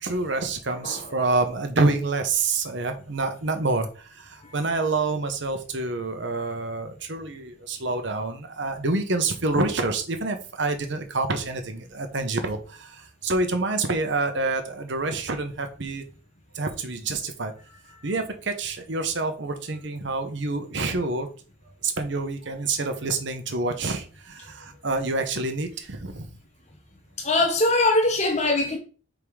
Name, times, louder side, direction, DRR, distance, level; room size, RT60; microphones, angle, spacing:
voice 1, 0.0-16.0 16.5-17.5 18.0-21.3 21.8-26.3, right 3 dB, 60° right, 1.0 m, -27 dB
voice 2, 27.2-28.8, left 2 dB, 35° left, 1.1 m, -21 dB
5.3 x 3.7 x 4.8 m
head